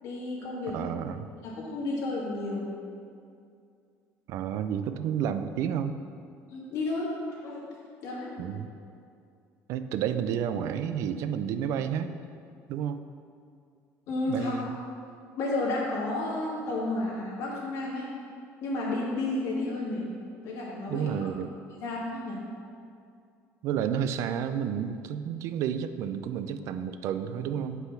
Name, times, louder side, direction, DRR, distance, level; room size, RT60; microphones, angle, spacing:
voice 1, 0.0-0.9 1.4-2.7 6.5-7.1 7.4-7.6 8.0-8.5 14.1-14.6 15.4-18.1 18.6-20.1 20.4-21.3 21.8-22.4, left 2 dB, 55° left, -5 dB, 2.4 m, -32 dB
voice 2, 0.7-1.3 4.3-6.0 8.4-8.7 9.7-12.2 12.7-13.0 14.3-14.8 20.9-21.5 23.6-27.9, right 8 dB, 55° right, 10 dB, 0.4 m, -31 dB
8.1 x 5.7 x 5.8 m, 2.4 s
cardioid pair, 170°, 6 cm